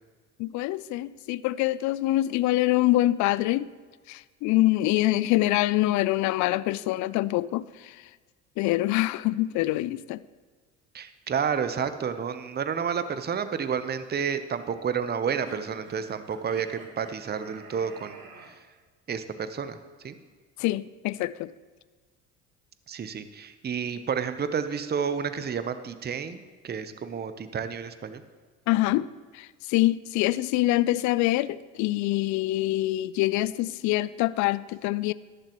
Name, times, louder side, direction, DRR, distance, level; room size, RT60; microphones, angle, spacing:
voice 1, 0.4-3.7 4.1-8.0 8.6-10.2 20.6-21.5 28.7-29.1 29.3-35.1, left 16 dB, 55° left, 19 dB, 0.5 m, -25 dB
voice 2, 10.9-18.2 18.4-18.5 19.1-19.8 20.0-20.2 22.9-28.2, right 7 dB, 25° right, 11 dB, 0.8 m, -30 dB
sound 1, 15.2-18.5, right 5 dB, 65° right, 2.1 m, -48 dB
14.5 x 11.5 x 3.1 m, 1.4 s
hypercardioid pair, 60°, 35 cm